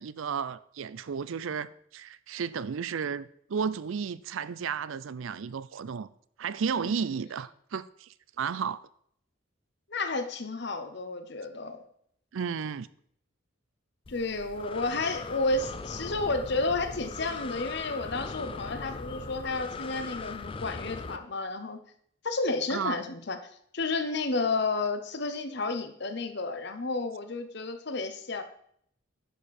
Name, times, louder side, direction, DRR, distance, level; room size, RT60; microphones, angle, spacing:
voice 1, 0.0-6.1 6.4-8.1 8.4-8.8 12.3-12.9 22.7-23.0, right 6 dB, 75° right, 0.4 m, -33 dB
voice 2, 9.9-11.8 14.1-21.8 22.2-23.4 23.7-28.4, left 3 dB, 55° left, 0.9 m, -31 dB
Breathing, 14.1-21.2, left 4 dB, 25° left, 0.4 m, -40 dB
10.5 x 6.6 x 4.3 m
head